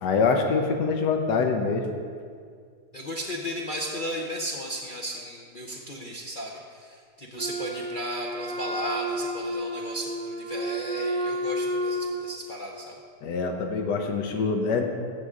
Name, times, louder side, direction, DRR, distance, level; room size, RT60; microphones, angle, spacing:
voice 1, 0.0-1.9 13.2-14.8, left 4 dB, 85° left, 4 dB, 1.5 m, -25 dB
voice 2, 2.9-12.9, equal, 45° left, -2 dB, 0.7 m, -35 dB
Wind instrument woodwind instrument, 7.3-12.3, equal, 40° right, 0.9 m, -31 dB
15.5 x 6.6 x 3.7 m, 2.1 s
omnidirectional pair, 1.8 m